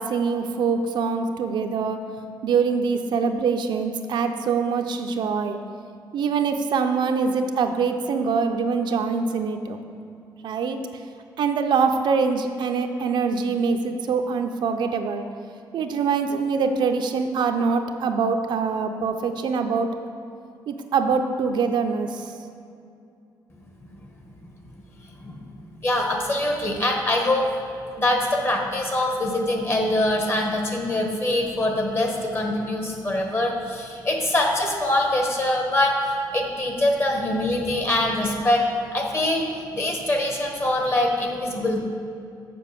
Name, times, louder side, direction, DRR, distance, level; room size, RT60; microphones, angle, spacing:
voice 1, 0.0-2.0 2.4-5.6 6.1-9.8 10.4-10.8 11.4-15.2 15.7-19.9 20.7-22.3, right 5 dB, 65° right, 5 dB, 0.6 m, -24 dB
voice 2, 25.8-27.5 28.0-38.7 38.9-39.5 39.7-41.8, left 1 dB, 30° left, 2 dB, 1.4 m, -23 dB
6.9 x 5.9 x 7.4 m, 2.5 s
cardioid pair, 130°, 8 cm